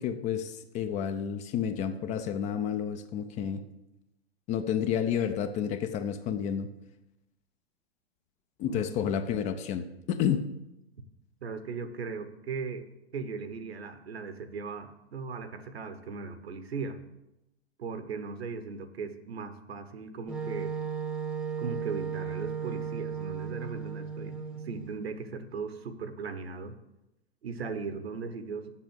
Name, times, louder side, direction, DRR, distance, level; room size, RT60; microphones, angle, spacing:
voice 1, 0.0-3.6 4.5-6.7 8.6-10.5, left 8 dB, 20° left, 9 dB, 0.5 m, -30 dB
voice 2, 11.4-12.9 13.1-17.0 17.8-20.7 21.6-26.8 27.4-28.7, right 5 dB, 65° right, 10 dB, 1.1 m, -38 dB
Wind instrument woodwind instrument, 20.3-25.0, right 6 dB, 5° right, 0.8 m, -35 dB
7.5 x 7.0 x 7.9 m, 0.92 s
figure-of-eight pair, 100°, 33 cm